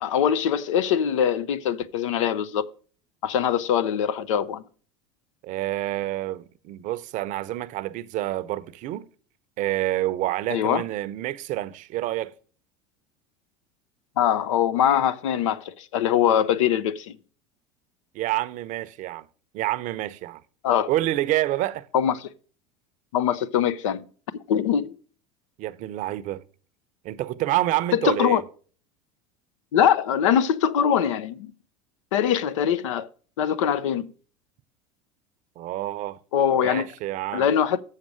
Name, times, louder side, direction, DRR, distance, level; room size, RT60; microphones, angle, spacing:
voice 1, 0.0-2.7 3.2-4.6 10.5-10.8 14.2-17.1 20.6-20.9 21.9-22.2 23.1-24.1 24.5-24.9 27.9-28.4 29.7-31.5 32.1-33.1 33.4-34.1 36.3-36.9 37.3-37.8, left 9 dB, 85° left, 0.6 m, -22 dB
voice 2, 5.4-9.1 9.6-12.3 18.1-19.3 19.5-20.4 20.9-21.9 25.6-26.4 27.0-28.4 35.6-36.2 36.5-37.5, right 15 dB, 55° right, 0.6 m, -28 dB
7.2 x 6.5 x 6.2 m
supercardioid pair, 95°, 16 cm